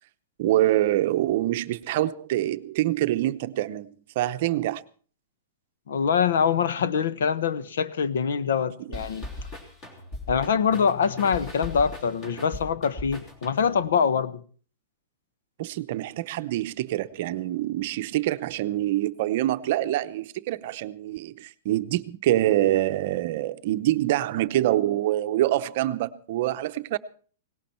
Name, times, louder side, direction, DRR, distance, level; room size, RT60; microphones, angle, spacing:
voice 1, 0.4-4.8 15.6-27.0, right 14 dB, 40° right, 0.7 m, -25 dB
voice 2, 5.9-9.3 10.3-14.4, left 6 dB, 75° left, 1.2 m, -24 dB
sound 1, 8.9-13.9, left 1 dB, 20° left, 3.1 m, -39 dB
18.5 x 17.5 x 4.4 m
supercardioid pair, 175°, 0 cm